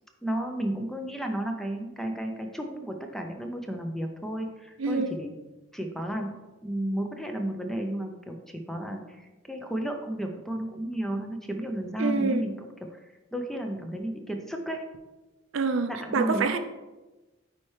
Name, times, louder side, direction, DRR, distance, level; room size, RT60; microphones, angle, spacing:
voice 1, 0.2-5.3 5.7-6.3 6.6-13.0 13.3-14.8 15.9-16.5, right 1 dB, ahead, 3 dB, 0.5 m, -33 dB
voice 2, 4.8-5.1 12.0-12.4 15.5-16.6, right 4 dB, 70° right, 9 dB, 0.5 m, -26 dB
9.0 x 4.3 x 3.2 m, 1.1 s
head